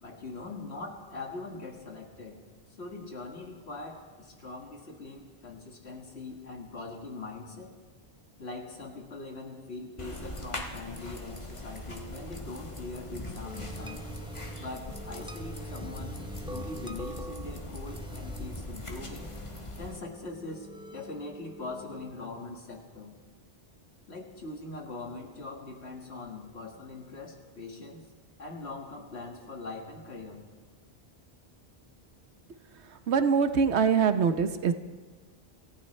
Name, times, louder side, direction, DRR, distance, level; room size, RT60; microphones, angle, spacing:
voice 1, 0.0-2.4 2.8-7.7 8.4-14.1 14.5-19.3 19.8-20.7 20.9-23.1 24.1-28.0 28.4-30.4, left 3 dB, 75° left, 1 dB, 2.2 m, -42 dB
sound 1, 10.0-20.0, left 1 dB, 30° left, 1.5 m, -41 dB
sound 2, 13.4-22.1, right 1 dB, 5° right, 0.6 m, -45 dB
voice 2, 33.1-34.7, right 6 dB, 80° right, 10 dB, 1.1 m, -23 dB
27.0 x 15.0 x 3.3 m, 1.5 s
omnidirectional pair, 1.1 m